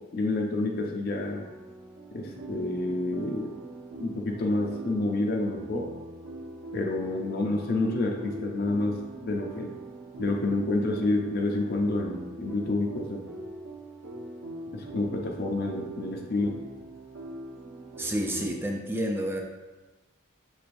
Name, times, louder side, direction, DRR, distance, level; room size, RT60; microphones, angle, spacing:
voice 1, 0.1-1.4 2.1-3.5 4.0-5.9 6.7-9.8 10.2-13.2 14.7-16.5, left 2 dB, 50° left, 1 dB, 0.4 m, -28 dB
sound 1, 1.4-18.5, right 2 dB, 75° right, 0.7 m, -42 dB
voice 2, 18.0-19.4, equal, 10° right, 2 dB, 0.4 m, -29 dB
6.1 x 3.1 x 2.5 m, 1.1 s
head